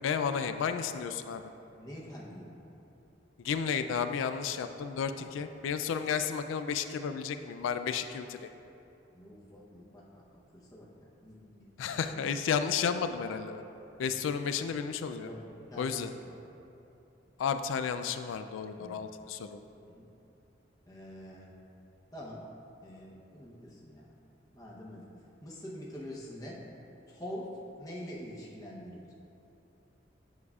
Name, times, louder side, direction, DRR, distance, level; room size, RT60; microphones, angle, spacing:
voice 1, 0.0-1.5 3.4-8.5 11.8-13.6 14.0-15.3 15.8-16.1 17.4-19.6, left 6 dB, 90° left, 9 dB, 0.3 m, -32 dB
voice 2, 1.8-2.7 5.1-5.6 9.1-12.2 14.0-14.4 15.2-16.4 18.8-19.1 19.8-20.1 20.9-21.5 22.1-22.5 22.8-24.1 24.5-25.1 25.4-26.6 27.1-29.1, equal, 20° left, -5 dB, 0.8 m, -46 dB
9.2 x 4.9 x 2.4 m, 2.9 s
head